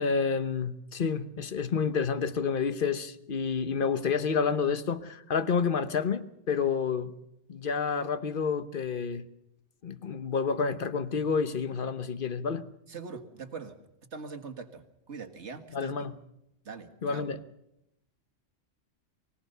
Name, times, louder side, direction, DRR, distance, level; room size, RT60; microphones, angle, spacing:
voice 1, 0.0-7.1 7.5-9.3 9.8-12.7 15.7-16.1 17.0-17.4, left 5 dB, 45° left, 1.2 m, -29 dB
voice 2, 12.9-13.8 14.1-16.1 16.6-17.3, right 5 dB, 60° right, 2.0 m, -42 dB
24.0 x 17.0 x 6.7 m
omnidirectional pair, 1.3 m